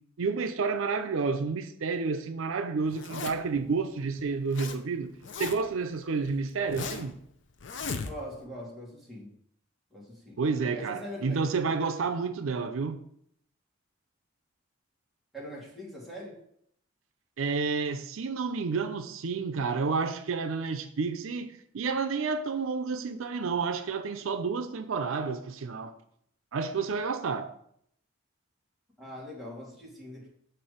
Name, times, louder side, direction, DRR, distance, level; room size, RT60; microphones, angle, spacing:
voice 1, 0.2-5.1 5.4-7.2 10.4-13.0 17.4-25.9 26.5-27.5, right 4 dB, 85° right, 0.5 m, -30 dB
Zipper (clothing), 2.9-3.6 4.2-4.8 5.0-5.8 6.3-7.1 7.6-8.4, left 5 dB, 65° left, 0.6 m, -37 dB
voice 2, 8.0-9.3 9.9-10.4 10.8-11.4 15.3-16.4 29.0-30.3, equal, ahead, 1.8 m, -42 dB
6.0 x 4.5 x 5.0 m
head